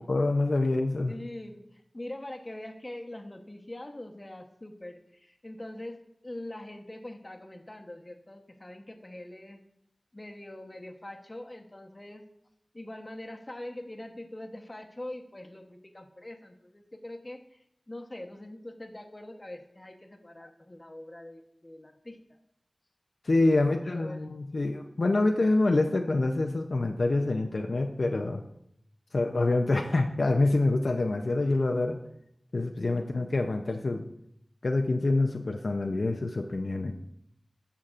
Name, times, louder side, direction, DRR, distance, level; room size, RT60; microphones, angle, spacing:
voice 1, 0.0-1.1 23.2-28.4 29.1-32.0 32.5-34.1 34.6-36.9, left 2 dB, 70° left, 3 dB, 0.5 m, -26 dB
voice 2, 1.1-9.6 10.1-12.2 12.7-22.4 23.6-24.3, left 1 dB, 35° left, 4 dB, 1.0 m, -43 dB
14.0 x 5.8 x 2.5 m, 0.75 s
cardioid pair, 40°, 0 cm